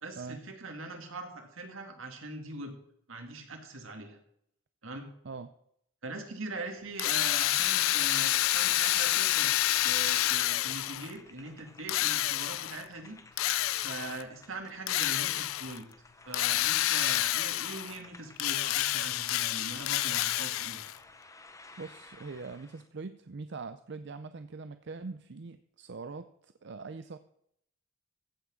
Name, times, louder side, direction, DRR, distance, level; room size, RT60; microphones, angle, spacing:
voice 1, 0.0-2.7 3.1-4.2 4.8-5.1 6.0-9.6 9.8-13.2 13.8-15.8 16.3-20.8, right 2 dB, 75° right, 4 dB, 2.3 m, -42 dB
Drill, 7.0-11.1 11.9-12.8 13.4-14.2 14.9-15.8 16.3-18.0 18.4-21.0, left 15 dB, 85° left, 0.4 m, -28 dB
sound 1, 7.8-22.9, left 3 dB, 15° left, 0.8 m, -54 dB
voice 2, 21.8-26.3 26.6-27.2, right 4 dB, 55° right, 11 dB, 0.5 m, -42 dB
15.0 x 6.1 x 6.3 m, 0.72 s
head